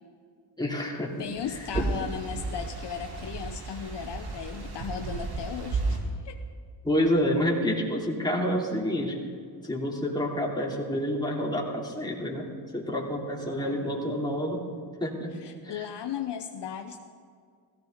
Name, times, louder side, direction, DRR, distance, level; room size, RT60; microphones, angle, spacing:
voice 1, 0.6-1.3 1.7-1.9 6.8-9.2 9.6-14.7 15.0-15.3 15.6-15.9, equal, 10° left, -2 dB, 3.0 m, -28 dB
voice 2, 1.2-6.4 13.6-14.2 15.4-17.0, left 8 dB, 60° left, 5 dB, 1.0 m, -36 dB
sound 1, 1.3-6.0, right 3 dB, 55° right, 2.8 m, -34 dB
16.5 x 15.0 x 3.9 m, 2.1 s
cardioid pair, 85°, 46 cm